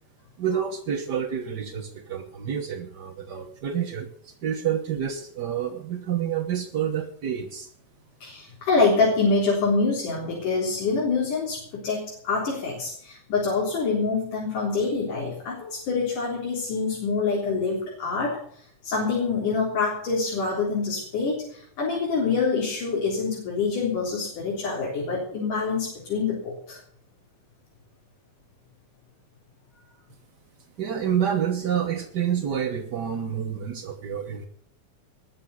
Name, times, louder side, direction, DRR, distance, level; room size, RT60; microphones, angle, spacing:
voice 1, 0.4-7.7 30.8-34.5, right 8 dB, 65° right, 5 dB, 1.0 m, -28 dB
voice 2, 8.2-18.4 18.8-26.8, left 4 dB, 85° left, -3 dB, 5.4 m, -26 dB
20.5 x 7.1 x 8.2 m, 0.62 s
omnidirectional pair, 3.5 m